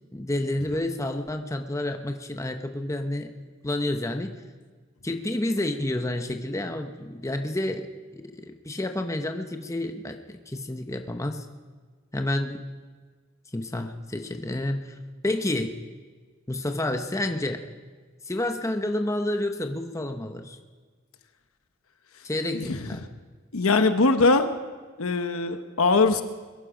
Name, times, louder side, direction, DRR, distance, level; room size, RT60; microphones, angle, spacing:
voice 1, 0.1-3.3 3.6-4.3 5.0-7.9 8.1-11.5 12.1-12.6 13.5-15.0 15.2-15.8 16.5-17.6 18.3-20.6 22.2-23.0, left 1 dB, 15° left, 6 dB, 0.8 m, -29 dB
voice 2, 22.5-22.9 23.5-24.5 25.0-26.2, left 3 dB, 90° left, 9 dB, 1.0 m, -21 dB
22.0 x 10.5 x 5.1 m, 1.5 s
head